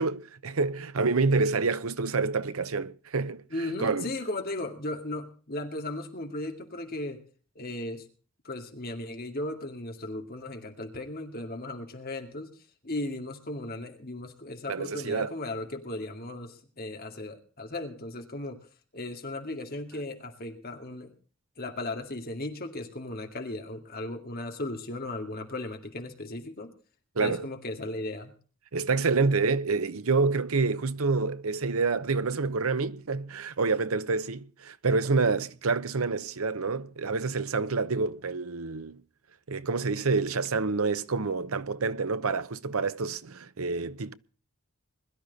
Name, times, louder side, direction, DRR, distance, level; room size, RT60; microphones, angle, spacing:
voice 1, 0.0-3.4 3.8-4.1 14.7-15.3 27.2-27.4 28.7-39.0 39.5-44.1, right 4 dB, 80° right, 0.8 m, -27 dB
voice 2, 3.5-7.2 7.6-8.1 8.4-12.5 12.8-18.7 18.9-21.1 21.6-26.7 27.2-28.3, left 2 dB, 45° left, 2.3 m, -36 dB
21.5 x 12.0 x 4.1 m
head